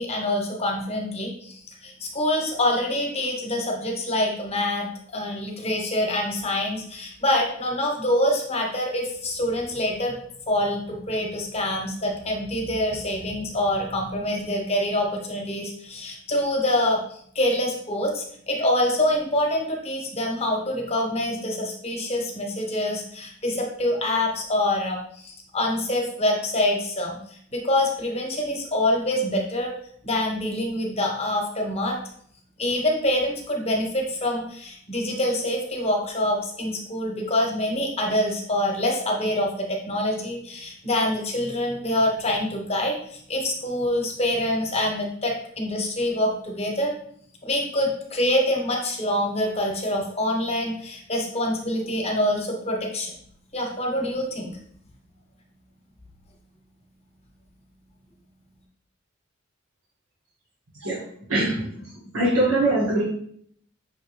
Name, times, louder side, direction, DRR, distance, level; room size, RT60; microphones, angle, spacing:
voice 1, 0.0-10.1 10.5-29.7 30.0-32.0 32.6-46.9 47.4-53.1 53.5-54.6, left 1 dB, 30° left, 1 dB, 0.9 m, -25 dB
voice 2, 61.3-61.6 62.1-63.0, right 1 dB, 90° right, -8 dB, 1.5 m, -21 dB
5.7 x 2.9 x 3.0 m, 0.64 s
head